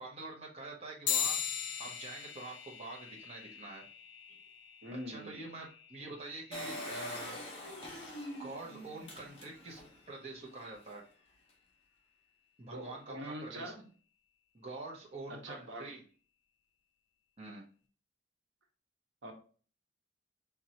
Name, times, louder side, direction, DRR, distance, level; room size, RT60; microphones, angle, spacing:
voice 1, 0.0-1.4 1.8-3.9 5.1-7.4 8.4-9.8 10.1-11.1 12.6-13.7 14.5-16.0 17.4-17.6, right 2 dB, 35° right, -2 dB, 0.9 m, -46 dB
sound 1, 1.1-10.9, left 8 dB, 75° left, 0.8 m, -42 dB
voice 2, 4.8-5.4 12.7-13.8 15.3-15.9 19.2-19.3, equal, 70° right, 2 dB, 1.2 m, -44 dB
Engine, 6.5-10.0 10.4-10.5 10.7-10.8, left 1 dB, 30° left, 1.4 m, -43 dB
4.4 x 3.7 x 2.9 m, 0.40 s
head